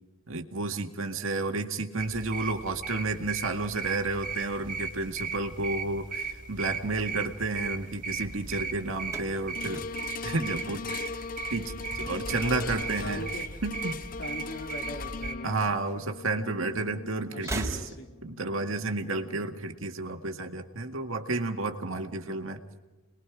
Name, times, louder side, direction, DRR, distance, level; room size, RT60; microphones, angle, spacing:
voice 1, 0.3-9.9 10.2-11.2 11.5-13.2 13.6-14.0 15.4-17.8 18.2-22.6, right 3 dB, 75° right, 5 dB, 2.0 m, -31 dB
sound 1, 2.0-15.3, right 5 dB, 40° right, 2.8 m, -37 dB
sound 2, 9.0-11.4 11.7-12.3 13.3-14.3 14.6-14.7 15.8-15.9 17.3-18.3, right 2 dB, 15° right, 3.4 m, -39 dB
sound 3, 9.5-19.9 20.5-20.6, left 4 dB, 40° left, 0.6 m, -40 dB
voice 2, 12.4-13.4 14.2-15.6 17.3-18.1, left 1 dB, 60° left, 1 dB, 4.0 m, -40 dB
30.0 x 21.5 x 4.9 m, 1.2 s
head